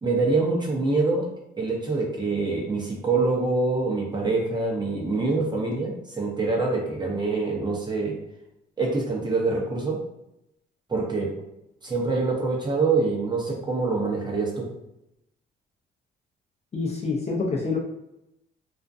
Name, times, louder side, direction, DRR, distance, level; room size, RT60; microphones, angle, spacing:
voice 1, 0.0-1.3 1.6-8.2 8.8-10.0 10.9-11.3 11.8-14.7, right 3 dB, 20° right, -2 dB, 0.7 m, -25 dB
voice 2, 16.7-17.8, left 4 dB, 35° left, -1 dB, 0.5 m, -26 dB
2.4 x 2.1 x 2.5 m, 0.84 s
cardioid pair, 90°, 20 cm